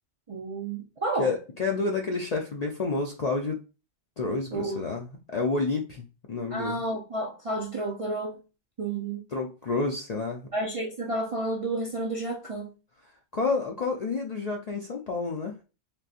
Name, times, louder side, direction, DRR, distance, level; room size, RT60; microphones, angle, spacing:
voice 1, 0.3-1.3 4.5-4.8 6.5-8.4 8.8-9.3 10.5-12.7, right 2 dB, 50° right, 0.4 m, -31 dB
voice 2, 1.2-3.6 4.2-6.8 9.3-10.5 13.3-15.5, left 3 dB, 55° left, 0.4 m, -29 dB
3.4 x 2.6 x 2.4 m
omnidirectional pair, 1.2 m